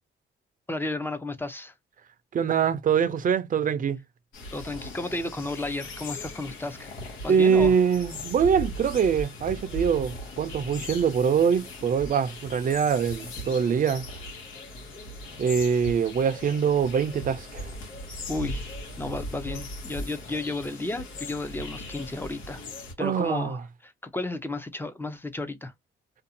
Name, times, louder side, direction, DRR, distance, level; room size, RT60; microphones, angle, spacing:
voice 1, 0.7-1.7 4.5-6.9 7.2-7.7 18.3-22.6 23.0-25.7, left 2 dB, 10° left, 0.5 m, -33 dB
voice 2, 2.3-4.0 7.3-14.0 15.4-17.7 23.0-23.6, right 7 dB, 45° right, 0.5 m, -24 dB
sound 1, 4.3-22.9, left 1 dB, 90° left, 1.0 m, -39 dB
2.6 x 2.3 x 2.6 m
cardioid pair, 90°, 20 cm